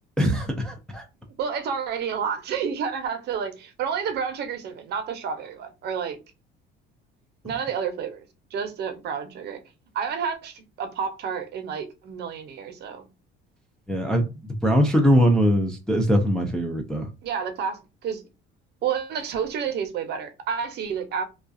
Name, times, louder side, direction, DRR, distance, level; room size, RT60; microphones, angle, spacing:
voice 1, 0.2-1.0 13.9-17.1, equal, 5° left, 0.3 m, -22 dB
voice 2, 1.4-6.2 7.4-8.2 8.5-9.6 9.9-13.1 17.2-18.2 18.8-21.3, right 7 dB, 50° right, 0.6 m, -30 dB
2.3 x 2.2 x 2.5 m
cardioid pair, 135°, 21 cm